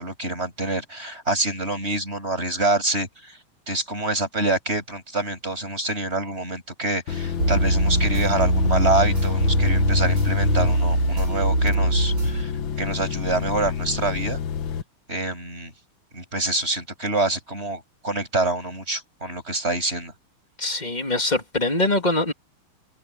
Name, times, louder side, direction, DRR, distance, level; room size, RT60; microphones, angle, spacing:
voice 1, 0.0-3.4 3.7-12.5 12.8-14.4 15.1-15.7 16.1-20.1, right 2 dB, 25° right, 8.3 m, -26 dB
sound 1, 7.1-14.8, left 8 dB, 65° left, 1.9 m, -28 dB
sound 2, 7.4-12.4, right 2 dB, 65° right, 7.3 m, -22 dB
voice 2, 20.6-22.3, left 2 dB, 20° left, 2.5 m, -23 dB
omnidirectional pair, 2.4 m